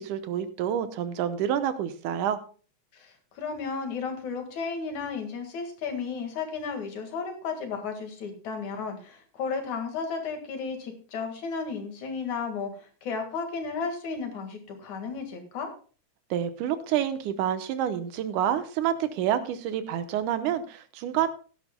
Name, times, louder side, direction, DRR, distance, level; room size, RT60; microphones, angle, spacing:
voice 1, 0.0-2.4 16.3-21.3, right 10 dB, 85° right, 10 dB, 2.4 m, -28 dB
voice 2, 2.9-15.7, left 5 dB, 70° left, 5 dB, 3.1 m, -34 dB
17.0 x 10.5 x 2.2 m, 0.39 s
omnidirectional pair, 3.6 m